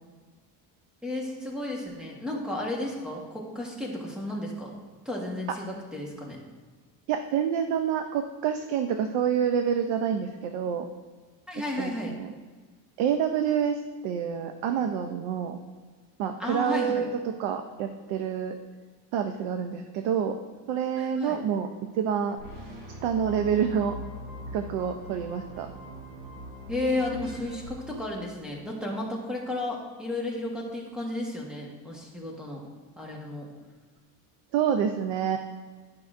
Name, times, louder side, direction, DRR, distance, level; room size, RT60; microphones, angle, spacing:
voice 1, 1.0-4.7 5.0-6.4 11.5-12.1 16.4-17.1 21.0-21.4 26.7-32.6 33.0-33.5, left 1 dB, ahead, -2 dB, 1.2 m, -33 dB
voice 2, 7.1-10.9 11.8-12.3 13.0-15.6 16.2-18.6 19.1-20.4 20.7-21.7 21.9-22.4 23.0-24.0 24.5-25.7 34.5-35.4, right 8 dB, 80° right, 7 dB, 0.6 m, -27 dB
sound 1, 22.4-28.5, equal, 50° right, 1.8 m, -42 dB
11.5 x 5.6 x 2.5 m, 1.4 s
cardioid pair, 155°, 43 cm